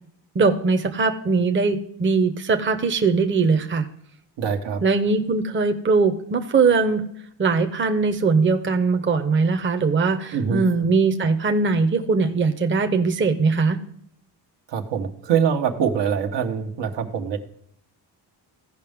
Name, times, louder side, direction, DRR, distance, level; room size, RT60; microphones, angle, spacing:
voice 1, 0.3-3.9 4.8-7.0 7.4-13.8, right 4 dB, 25° right, 6 dB, 0.8 m, -21 dB
voice 2, 4.4-4.8 10.3-10.6 14.7-17.4, right 7 dB, 75° right, 4 dB, 1.3 m, -24 dB
15.5 x 5.4 x 3.5 m, 0.71 s
cardioid pair, 110°, 43 cm